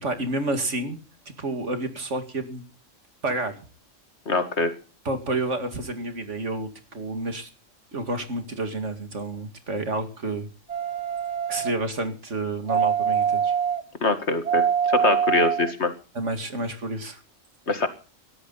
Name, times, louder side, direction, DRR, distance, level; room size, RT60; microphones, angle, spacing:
voice 1, 0.0-1.0 1.3-2.6 3.2-3.7 5.0-7.5 7.9-10.5 11.5-13.5 16.1-17.2, right 2 dB, 70° right, 7 dB, 2.6 m, -29 dB
voice 2, 4.3-4.7 14.0-14.6 15.0-15.9 17.7-17.9, left 3 dB, 60° left, 9 dB, 2.1 m, -23 dB
sound 1, 10.7-11.7 12.7-13.8 14.4-15.7 16.3-16.4, right 8 dB, 30° right, 1.8 m, -24 dB
18.5 x 13.5 x 4.1 m, 0.37 s
omnidirectional pair, 1.3 m